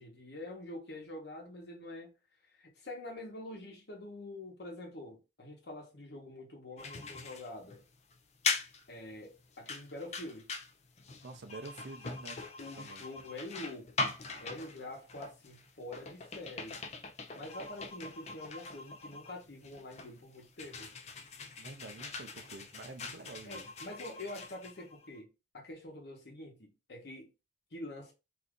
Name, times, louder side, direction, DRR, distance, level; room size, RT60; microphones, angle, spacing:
voice 1, 0.0-2.1 2.5-7.8 8.9-10.5 12.6-16.8 17.3-20.9 23.4-25.3 25.5-27.3 27.7-28.1, left 1 dB, 70° left, 1.0 m, -46 dB
sound 1, 6.8-25.2, left 4 dB, 35° left, 0.4 m, -41 dB
voice 2, 11.2-12.5 12.7-13.1 21.6-23.7, right 3 dB, 75° right, 0.5 m, -48 dB
2.7 x 2.4 x 3.6 m
head